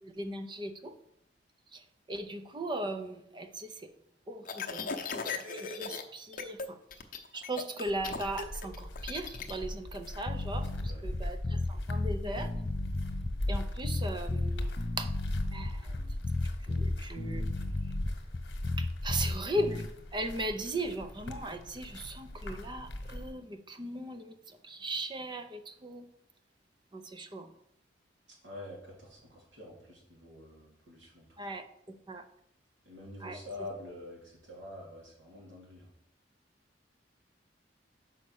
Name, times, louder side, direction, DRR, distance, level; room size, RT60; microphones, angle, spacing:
voice 1, 0.0-1.0 1.7-3.9 4.3-6.8 7.3-12.5 13.5-15.1 15.5-16.0 16.6-17.5 18.8-26.1 26.9-27.5 31.4-31.7 32.1-32.2 33.2-33.4, right 1 dB, 25° right, 9 dB, 0.6 m, -38 dB
sound 1, 4.4-6.0 6.3-6.7 6.9-9.5, left 5 dB, 50° left, 0.8 m, -37 dB
sound 2, 7.9-23.3, left 1 dB, 70° left, 1.1 m, -39 dB
sound 3, 10.3-19.9, left 2 dB, 30° left, 0.4 m, -34 dB
voice 2, 10.6-11.1 28.4-31.3 32.8-35.9, left 1 dB, 80° right, -3 dB, 3.1 m, -46 dB
5.6 x 5.3 x 6.3 m, 0.75 s
head